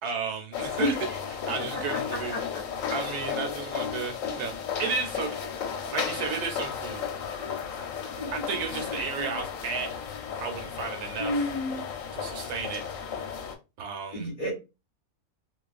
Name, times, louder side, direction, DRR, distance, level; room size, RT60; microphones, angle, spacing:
voice 1, 0.0-0.9 1.4-2.4 2.9-5.4 5.9-7.1 7.5-7.6 8.3-9.9 10.4-11.3 12.1-12.8 13.8-14.3, right 5 dB, 80° right, 1.1 m, -33 dB
sound 1, 0.5-13.6, left 7 dB, 70° left, 0.9 m, -34 dB
voice 2, 11.2-11.8 14.1-14.5, left 1 dB, 40° left, 0.8 m, -30 dB
2.4 x 2.3 x 2.4 m
omnidirectional pair, 1.6 m